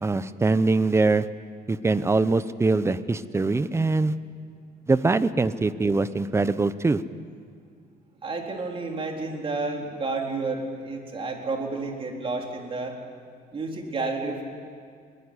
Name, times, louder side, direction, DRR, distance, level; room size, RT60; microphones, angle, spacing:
voice 1, 0.0-1.2 1.7-4.1 4.9-7.0, right 3 dB, 15° right, 14 dB, 0.8 m, -23 dB
voice 2, 8.2-13.0 13.5-14.4, right 3 dB, 35° right, 2 dB, 3.8 m, -30 dB
22.0 x 20.0 x 9.8 m, 2.2 s
cardioid pair, 130°, 16 cm